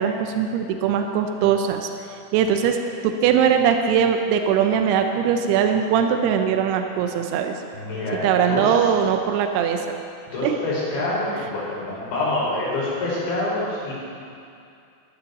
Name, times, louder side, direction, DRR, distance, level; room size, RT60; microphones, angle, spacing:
voice 1, 0.0-1.9 2.3-2.8 3.0-7.5 8.2-9.9 10.4-10.5, right 8 dB, 90° right, 5 dB, 2.3 m, -20 dB
voice 2, 7.7-8.9 10.3-13.9, left 2 dB, 65° left, -6 dB, 5.9 m, -26 dB
14.0 x 13.0 x 4.1 m, 2.5 s
omnidirectional pair, 5.6 m